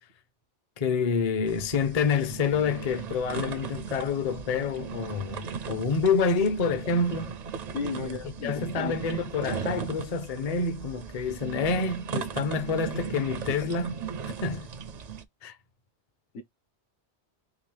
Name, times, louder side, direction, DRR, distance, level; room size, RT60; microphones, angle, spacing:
voice 1, 0.8-7.3 8.0-8.1 8.4-14.0 14.4-14.7 15.4-15.5, left 5 dB, 40° left, 0.6 m, -27 dB
sound 1, 1.4-15.2, right 6 dB, 50° right, 0.5 m, -37 dB
voice 2, 7.7-9.0 14.3-14.4 16.3-16.4, left 3 dB, 85° left, 1.4 m, -34 dB
3.9 x 3.1 x 3.2 m
omnidirectional pair, 1.2 m